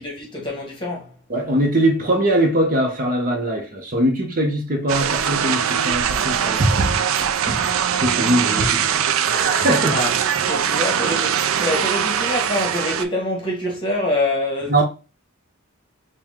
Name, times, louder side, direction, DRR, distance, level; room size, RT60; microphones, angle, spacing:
voice 1, 0.0-1.2 9.9-14.8, left 1 dB, 25° left, 1.3 m, -25 dB
voice 2, 1.3-7.7 8.0-10.0 14.7-14.8, right 1 dB, 40° right, 0.7 m, -21 dB
sound 1, 4.9-13.0, right 8 dB, 80° right, 0.4 m, -21 dB
4.7 x 2.2 x 3.6 m
head